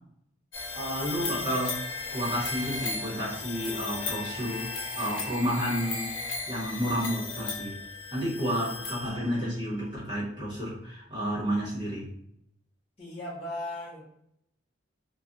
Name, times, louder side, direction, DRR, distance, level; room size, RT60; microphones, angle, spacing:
sound 1, 0.5-9.6, left 3 dB, 70° left, 0.7 m, -36 dB
voice 1, 0.7-1.8 2.1-6.1 6.5-7.8 8.1-12.1, equal, 25° right, -8 dB, 1.3 m, -31 dB
voice 2, 13.0-14.0, left 1 dB, 30° left, -5 dB, 1.1 m, -37 dB
3.3 x 2.2 x 2.6 m, 0.74 s
head